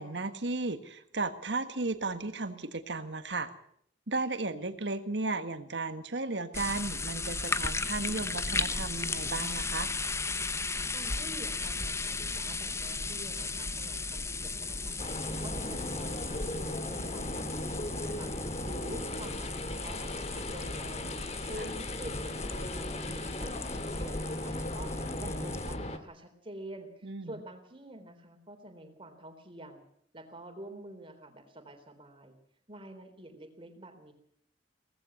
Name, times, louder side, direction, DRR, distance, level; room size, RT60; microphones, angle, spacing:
voice 1, 0.0-3.5 4.1-9.9 27.0-27.3, right 3 dB, 75° right, 10 dB, 1.7 m, -34 dB
sound 1, 6.5-25.8, left 3 dB, 15° left, 0.8 m, -36 dB
voice 2, 10.9-29.8 30.1-32.4 32.7-34.1, right 1 dB, 30° right, 6 dB, 3.7 m, -48 dB
sound 2, 15.0-26.0, left 1 dB, 40° left, 1.9 m, -37 dB
18.0 x 15.0 x 9.7 m, 0.69 s
head